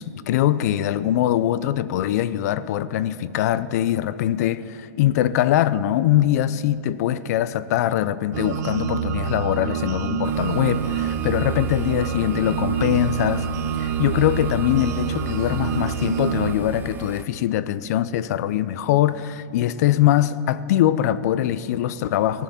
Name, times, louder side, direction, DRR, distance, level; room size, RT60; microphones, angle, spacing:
voice 1, 0.0-13.5 13.8-22.4, left 12 dB, 65° left, 0.5 m, -22 dB
sound 1, 8.3-16.5, right 7 dB, 70° right, 0.7 m, -26 dB
sound 2, 10.2-17.3, right 6 dB, 20° right, 0.6 m, -38 dB
14.0 x 10.5 x 5.7 m
hypercardioid pair, 135°, 10 cm